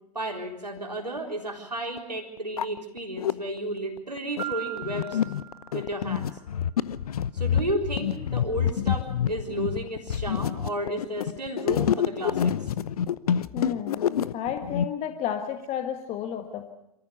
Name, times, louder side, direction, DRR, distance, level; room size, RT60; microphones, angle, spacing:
voice 1, 0.1-5.2 5.7-6.3 7.3-12.7, right 1 dB, 90° right, 1 dB, 4.0 m, -33 dB
sound 1, 1.2-1.3 2.0-2.1 2.4-3.3 4.0-14.8, left 9 dB, 65° left, 0.8 m, -27 dB
Piano, 4.4-6.3, right 13 dB, 25° right, 1.8 m, -38 dB
voice 2, 13.5-14.1 14.3-16.7, left 9 dB, 30° left, 6 dB, 1.6 m, -32 dB
27.0 x 14.5 x 7.0 m, 0.83 s
figure-of-eight pair, 95°, 20 cm